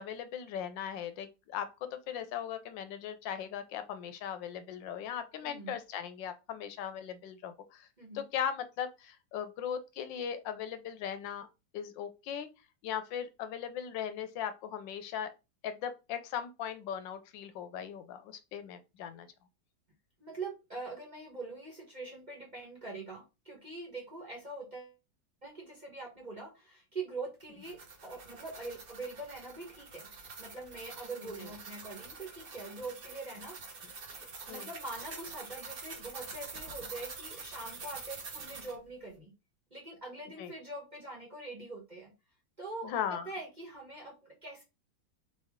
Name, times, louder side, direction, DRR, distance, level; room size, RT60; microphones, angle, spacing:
voice 1, 0.0-7.9 8.1-11.5 11.7-12.5 12.8-15.3 15.6-19.3 31.4-31.5 34.5-34.7 40.4-40.5 42.8-43.3, left 8 dB, 80° left, 1.2 m, -38 dB
voice 2, 5.4-5.8 8.0-8.3 20.2-24.9 25.4-30.1 30.4-39.3 39.7-42.1 42.6-44.6, right 3 dB, 30° right, 1.1 m, -44 dB
sound 1, 27.4-38.8, right 4 dB, 50° right, 0.7 m, -46 dB
4.1 x 3.2 x 3.5 m
omnidirectional pair, 2.0 m